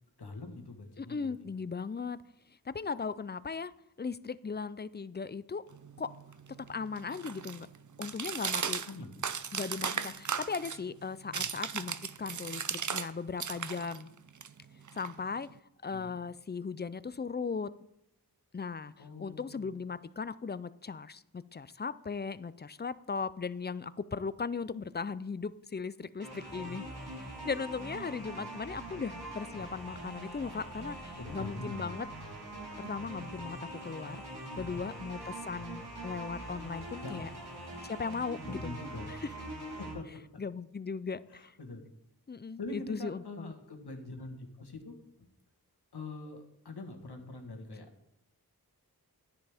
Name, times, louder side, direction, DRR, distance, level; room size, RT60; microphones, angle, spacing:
voice 1, 0.2-1.3 8.9-9.1 9.5-10.2 11.3-11.5 15.9-16.2 19.0-19.8 26.4-26.7 31.2-31.9 34.5-34.8 37.0-37.3 38.4-39.1 39.8-40.4 41.3-41.8 42.6-45.3 45.9-47.9, left 2 dB, 85° left, 4 dB, 1.5 m, -44 dB
voice 2, 1.0-2.2 2.7-3.7 4.0-5.6 6.0-6.1 6.7-7.7 8.0-8.8 9.5-14.1 15.0-15.5 15.8-17.7 18.5-18.9 19.2-26.8 27.4-32.1 32.8-34.2 34.6-37.3 37.8-38.7 39.1-39.3 40.4-41.5 42.3-43.5, left 5 dB, 25° left, 16 dB, 0.4 m, -37 dB
sound 1, 5.7-13.1 13.4-15.6, right 7 dB, 50° right, 0.5 m, -37 dB
sound 2, 26.2-39.9, right 1 dB, 80° right, 4.0 m, -43 dB
11.5 x 10.0 x 3.5 m, 0.82 s
wide cardioid pair, 55°, 38 cm